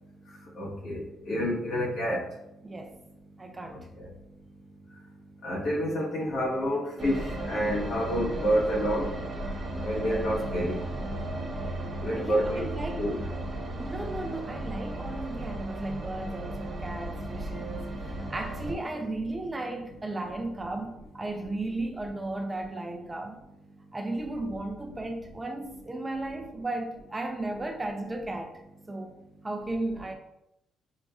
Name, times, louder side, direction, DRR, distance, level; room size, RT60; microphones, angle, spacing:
voice 1, 0.6-2.2 4.0-4.1 5.4-9.1 9.8-10.8 12.0-13.1, equal, 70° left, 1.4 m, -28 dB
voice 2, 2.6-3.0 3.4-3.9 12.2-13.0 13.7-23.4 23.9-28.5 28.9-29.2 29.4-30.1, right 2 dB, 20° right, 0.5 m, -35 dB
sound 1, 7.0-18.7, right 1 dB, 35° right, 0.9 m, -35 dB
6.3 x 2.6 x 2.3 m
cardioid pair, 90°, 0 cm